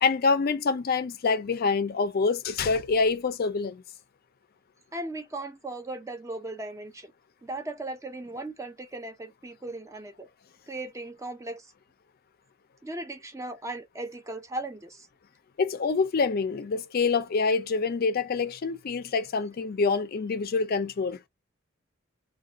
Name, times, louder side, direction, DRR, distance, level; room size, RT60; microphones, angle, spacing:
voice 1, 0.0-3.8 15.6-21.2, left 4 dB, 50° left, 0.4 m, -26 dB
voice 2, 4.9-7.1 7.4-10.3 10.7-11.7 12.8-15.1, right 2 dB, 15° right, 0.5 m, -37 dB
2.3 x 2.2 x 3.8 m
head